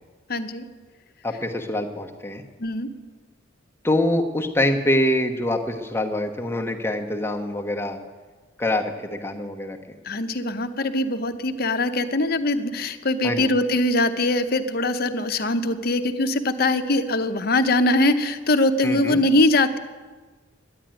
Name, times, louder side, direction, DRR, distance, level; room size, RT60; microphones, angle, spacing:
voice 1, 0.3-0.6 2.6-2.9 10.0-19.8, left 2 dB, 50° left, 8 dB, 0.8 m, -22 dB
voice 2, 1.2-2.4 3.8-8.0 8.6-10.0 13.2-13.4 18.8-19.2, left 1 dB, 10° left, 2 dB, 1.1 m, -25 dB
11.0 x 10.5 x 8.9 m, 1.4 s
head